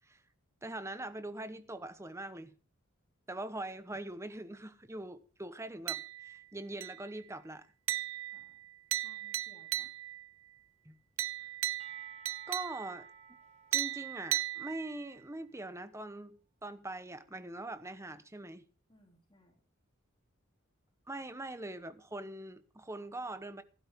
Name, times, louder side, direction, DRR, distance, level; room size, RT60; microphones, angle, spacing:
voice 1, 0.6-2.5 3.3-7.7 10.8-11.0 12.5-13.1 13.7-18.6 21.1-23.6, right 2 dB, 15° right, 1.0 m, -42 dB
sound 1, 5.9-6.4 6.8-7.2 7.9-10.3 11.2-13.1 13.7-15.2, right 14 dB, 65° right, 0.6 m, -37 dB
voice 2, 8.3-8.7 9.0-9.9 18.9-19.6, left 1 dB, 25° left, 3.1 m, -64 dB
Percussion / Church bell, 11.8-15.7, right 2 dB, 30° right, 1.5 m, -58 dB
15.5 x 12.5 x 3.6 m
head